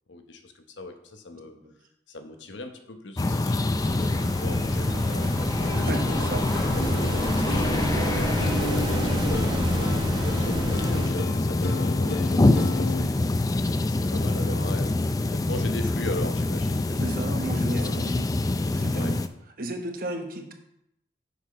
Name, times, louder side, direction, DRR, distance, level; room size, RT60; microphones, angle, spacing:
voice 1, 0.1-1.5 2.1-6.3 6.9-9.5 10.3-13.2 13.6-15.0 15.3-17.2 17.5-18.1 18.9-19.2, left 2 dB, 90° left, 6 dB, 1.0 m, -39 dB
sound 1, 3.2-19.3, left 2 dB, 20° left, 0.3 m, -25 dB
sound 2, 3.7-11.1, right 1 dB, 25° right, 0.8 m, -32 dB
Plucked string instrument, 5.6-13.0, left 1 dB, 60° left, 0.7 m, -34 dB
voice 2, 5.7-6.9 9.4-9.7 17.0-18.3 18.7-19.2 19.6-20.5, right 1 dB, 50° right, 4 dB, 1.1 m, -34 dB
7.0 x 5.9 x 5.1 m, 0.79 s
head